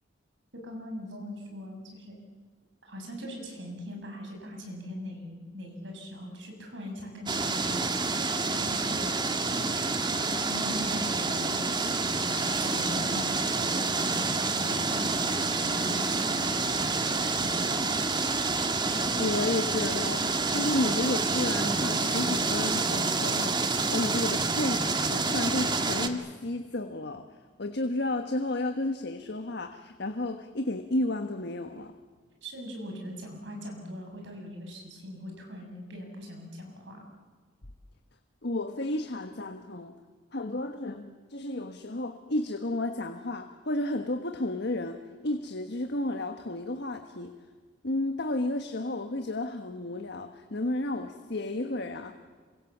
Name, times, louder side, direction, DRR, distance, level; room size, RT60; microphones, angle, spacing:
voice 1, 0.5-2.2 2.8-9.4 10.2-17.9 32.4-37.0, equal, 75° right, 2 dB, 7.0 m, -41 dB
sound 1, 7.3-26.1, right 3 dB, 25° right, 1.7 m, -28 dB
voice 2, 18.8-27.2 27.6-31.9 38.4-39.9 40.3-47.4 47.8-52.2, left 2 dB, 60° left, 6 dB, 1.4 m, -32 dB
27.5 x 24.5 x 7.4 m, 1.5 s
head